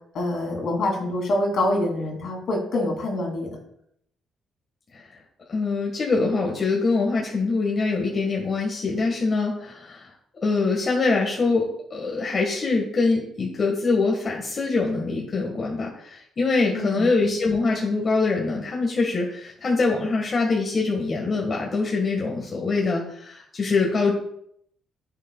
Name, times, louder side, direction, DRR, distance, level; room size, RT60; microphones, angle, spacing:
voice 1, 0.1-3.6 16.7-17.1, left 1 dB, 65° left, 1 dB, 2.6 m, -25 dB
voice 2, 5.5-10.1 10.4-24.1, left 3 dB, 40° left, -1 dB, 1.5 m, -24 dB
10.5 x 6.5 x 2.3 m, 0.71 s
cardioid pair, 90°, 0 cm